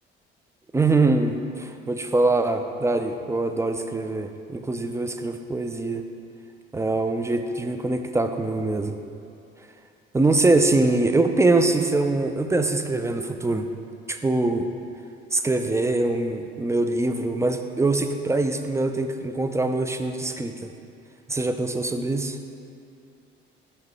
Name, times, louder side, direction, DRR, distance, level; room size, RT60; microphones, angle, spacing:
voice 1, 0.7-6.0 6.7-8.9 10.1-13.7 14.1-14.7 15.3-20.7 21.3-22.4, right 2 dB, 10° right, 7 dB, 0.4 m, -23 dB
6.4 x 5.5 x 3.6 m, 2.5 s
hypercardioid pair, 60°, 30 cm